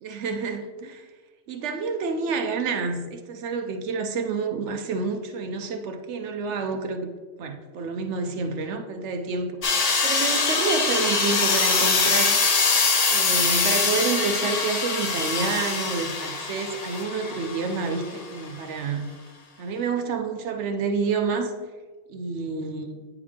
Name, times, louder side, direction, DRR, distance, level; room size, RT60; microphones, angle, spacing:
voice 1, 0.0-1.1 1.5-7.1 7.4-9.6 10.0-12.4 13.1-19.1 19.6-21.5 22.1-23.0, right 4 dB, 70° right, 6 dB, 0.8 m, -28 dB
sound 1, 9.6-18.2, left 4 dB, 45° left, 0.5 m, -23 dB
9.5 x 3.5 x 3.3 m, 1.4 s
omnidirectional pair, 1.4 m